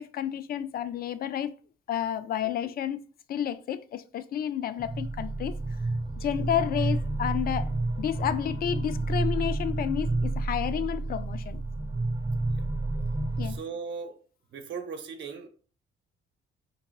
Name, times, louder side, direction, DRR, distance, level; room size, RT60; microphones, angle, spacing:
voice 1, 0.0-1.6 1.9-3.0 3.3-5.6 6.2-7.7 8.0-11.6 13.4-13.6, left 10 dB, 50° left, 0.4 m, -31 dB
sound 1, 4.8-13.6, right 2 dB, 25° right, 0.6 m, -30 dB
voice 2, 13.4-14.2 14.5-15.5, right 5 dB, 65° right, 0.7 m, -38 dB
3.4 x 2.9 x 2.9 m
cardioid pair, 90°, 20 cm